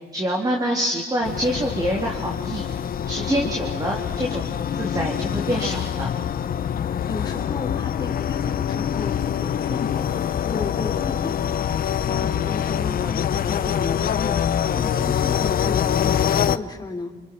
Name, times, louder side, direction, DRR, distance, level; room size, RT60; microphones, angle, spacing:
voice 1, 0.1-2.6 3.1-6.1, right 1 dB, 20° right, 0 dB, 3.6 m, -26 dB
sound 1, 1.2-16.6, left 9 dB, 55° left, 0.9 m, -25 dB
voice 2, 7.1-9.1 9.4-14.4 14.7-17.1, left 3 dB, 25° left, 1 dB, 3.7 m, -34 dB
29.5 x 29.5 x 4.7 m, 1.4 s
cardioid pair, 110°, 18 cm